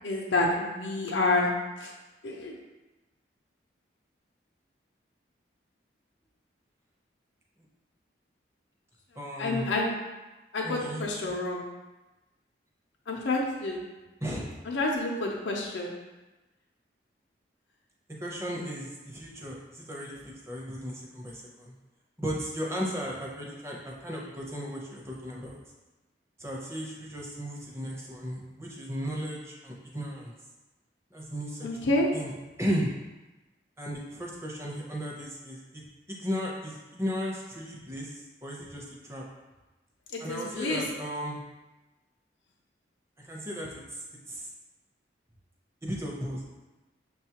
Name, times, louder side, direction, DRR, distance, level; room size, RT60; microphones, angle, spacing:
voice 1, 0.0-1.5 1.8-1.9 2.2-2.6 9.4-9.9 10.5-11.6 13.1-13.8 14.7-15.9 31.6-32.1 40.1-40.8, left 2 dB, 85° left, -1 dB, 0.5 m, -28 dB
voice 2, 9.2-9.6 10.6-11.3 14.2-14.5 18.2-21.7 22.2-25.6 26.4-30.3 31.1-32.3 32.6-32.9 33.8-39.2 40.2-41.4 43.2-44.5 45.8-46.4, equal, 15° right, -3 dB, 0.6 m, -35 dB
6.3 x 2.3 x 2.8 m, 1.1 s
head